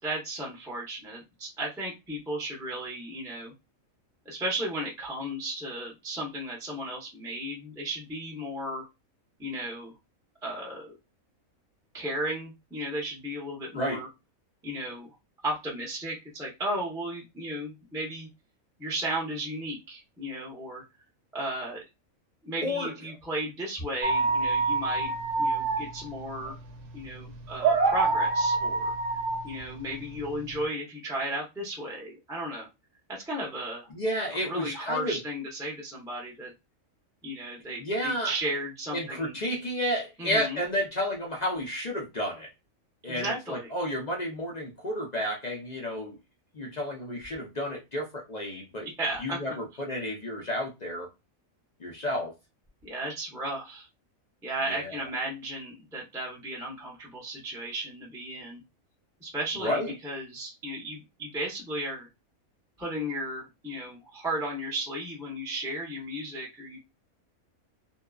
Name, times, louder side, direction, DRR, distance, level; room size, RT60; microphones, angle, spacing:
voice 1, 0.0-3.5 4.2-8.8 9.4-9.9 10.4-10.9 11.9-14.1 14.6-15.1 15.4-18.3 18.8-20.8 21.3-21.8 22.4-26.6 26.9-28.9 29.4-32.7 33.1-33.9 34.5-36.5 37.2-39.4 40.2-40.6 43.0-43.7 48.8-49.4 52.8-53.9 54.4-58.6 59.2-62.1 62.8-66.8, right 1 dB, 5° right, 0.5 m, -35 dB
voice 2, 22.6-22.9 33.9-35.2 37.8-38.3 38.9-42.5 43.0-46.2 46.5-48.9 49.2-51.1 51.8-52.3 54.7-55.0 59.6-59.9, equal, 55° left, 0.4 m, -31 dB
sound 1, 24.0-30.6, right 3 dB, 65° right, 0.8 m, -27 dB
2.8 x 2.2 x 2.3 m
omnidirectional pair, 1.5 m